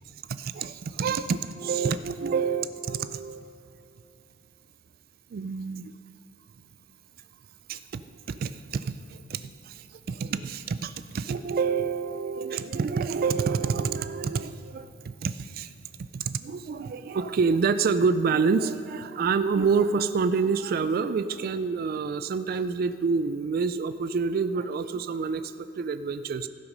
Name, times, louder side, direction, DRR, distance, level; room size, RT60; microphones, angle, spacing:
voice 1, 0.3-3.5 5.3-5.9 7.7-8.0 8.3-15.7 16.0-26.5, right 5 dB, 50° right, 12 dB, 0.3 m, -28 dB
16.5 x 5.9 x 5.4 m, 2.7 s
head